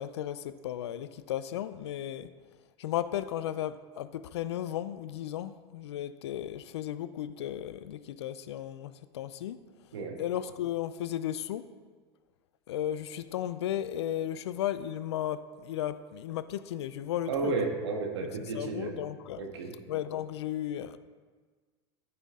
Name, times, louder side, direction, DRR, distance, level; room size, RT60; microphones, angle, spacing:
voice 1, 0.0-2.3 2.8-9.6 10.2-11.7 12.7-17.5 18.5-19.4 19.9-21.0, left 11 dB, 85° left, 0.5 m, -35 dB
voice 2, 17.3-19.0 19.4-19.8, right 4 dB, 90° right, 1.5 m, -32 dB
14.0 x 5.8 x 3.7 m
hypercardioid pair, 105°, 14 cm